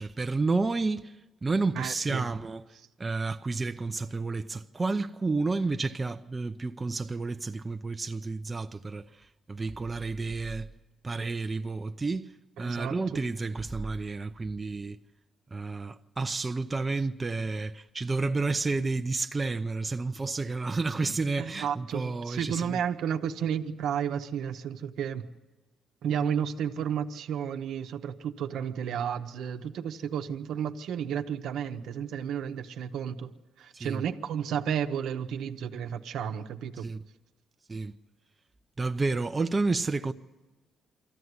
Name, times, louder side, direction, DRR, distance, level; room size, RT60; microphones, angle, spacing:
voice 1, 0.0-2.6 3.0-10.7 11.0-15.0 15.5-22.8 33.7-34.0 36.8-37.0 37.7-38.0 38.8-40.1, right 3 dB, 25° right, 0.7 m, -31 dB
voice 2, 1.7-2.3 12.6-13.2 21.4-25.2 26.0-33.3 33.6-36.9, right 8 dB, 80° right, 1.0 m, -32 dB
23.5 x 14.5 x 9.6 m
cardioid pair, 90°, 0 cm